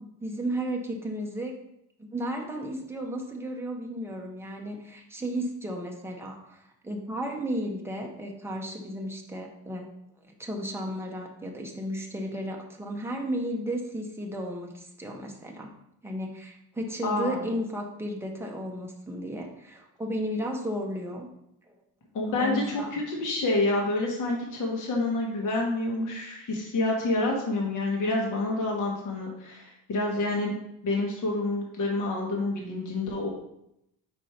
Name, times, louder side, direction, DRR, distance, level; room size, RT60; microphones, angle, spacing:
voice 1, 0.2-1.6 2.0-9.9 10.3-15.7 16.0-21.3 21.7-21.8 22.3-22.9, equal, 5° right, 0 dB, 0.8 m, -34 dB
voice 2, 17.0-17.4 22.1-30.6 30.8-33.3, left 2 dB, 40° left, -1 dB, 1.3 m, -28 dB
5.3 x 4.5 x 4.3 m, 0.80 s
cardioid pair, 135°, 48 cm